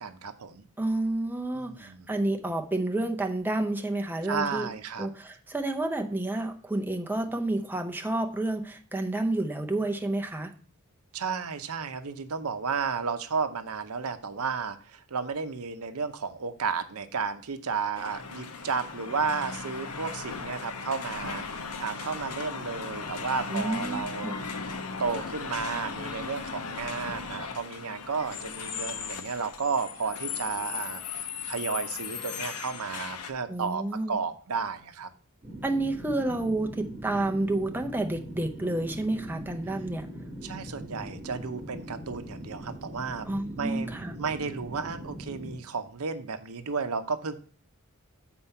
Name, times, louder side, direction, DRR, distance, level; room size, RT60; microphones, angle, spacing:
voice 1, 0.0-0.6 1.5-2.1 4.2-5.1 11.1-24.4 25.0-35.1 40.4-43.3 43.6-47.3, right 5 dB, 70° right, 0.7 m, -33 dB
voice 2, 0.8-4.7 5.0-10.5 23.5-24.5 33.5-34.1 35.6-40.1 43.3-44.2, right 2 dB, 10° right, 0.6 m, -30 dB
sound 1, 18.0-33.3, left 5 dB, 90° left, 0.9 m, -37 dB
sound 2, 35.4-45.6, equal, 30° right, 2.8 m, -41 dB
7.3 x 4.4 x 5.5 m
head